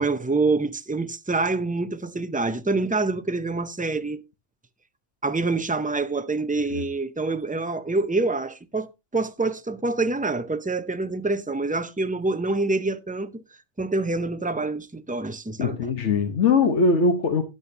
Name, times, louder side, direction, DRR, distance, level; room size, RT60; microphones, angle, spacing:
voice 1, 0.0-4.2 5.2-13.4 13.8-15.8, right 3 dB, 15° right, 0.3 m, -26 dB
voice 2, 15.6-17.4, left 4 dB, 90° left, 1.4 m, -21 dB
12.5 x 9.6 x 2.7 m
omnidirectional pair, 1.2 m